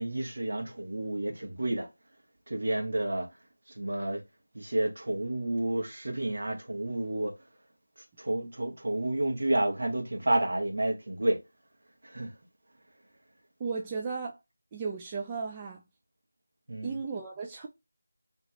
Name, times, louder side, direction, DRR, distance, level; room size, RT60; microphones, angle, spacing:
voice 1, 0.0-1.9 2.5-3.3 3.8-4.2 4.5-7.3 8.2-11.4 12.0-12.3 16.7-17.0, right 1 dB, 60° right, 1.2 m, -30 dB
voice 2, 13.6-14.4 14.7-15.8 16.8-17.7, right 5 dB, 15° right, 0.3 m, -35 dB
2.9 x 2.9 x 2.3 m
figure-of-eight pair, 170°, 0 cm